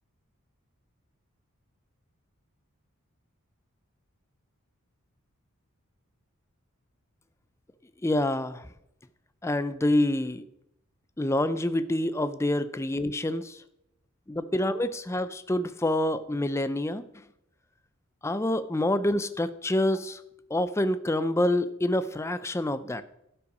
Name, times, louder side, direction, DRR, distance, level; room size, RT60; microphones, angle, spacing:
voice 1, 8.0-8.7 9.4-10.4 11.2-13.6 14.3-17.0 18.2-20.2 20.5-23.0, left 1 dB, 15° left, 13 dB, 0.4 m, -27 dB
11.5 x 5.7 x 5.3 m, 0.81 s
head